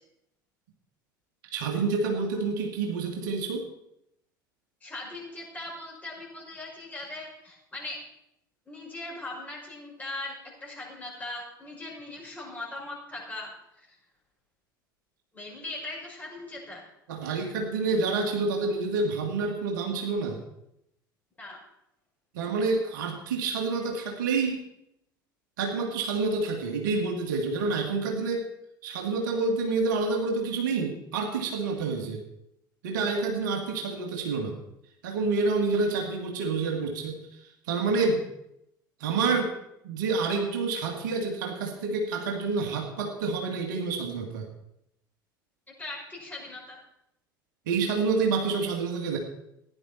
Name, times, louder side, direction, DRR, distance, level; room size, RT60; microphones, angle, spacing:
voice 1, 1.5-3.7 17.1-20.4 22.3-24.6 25.6-28.5 28.8-32.2 32.8-34.6 35.0-37.2 37.7-38.2 39.0-39.5 39.8-44.5 47.7-49.2, right 4 dB, 60° right, 2 dB, 2.0 m, -28 dB
voice 2, 4.8-8.0 8.7-10.4 10.6-13.5 13.8-13.9 15.3-16.8 21.4-21.6 38.0-38.1 45.8-46.8, left 2 dB, 15° left, -3 dB, 5.7 m, -39 dB
15.5 x 10.5 x 4.3 m, 0.80 s
figure-of-eight pair, 70°, 11 cm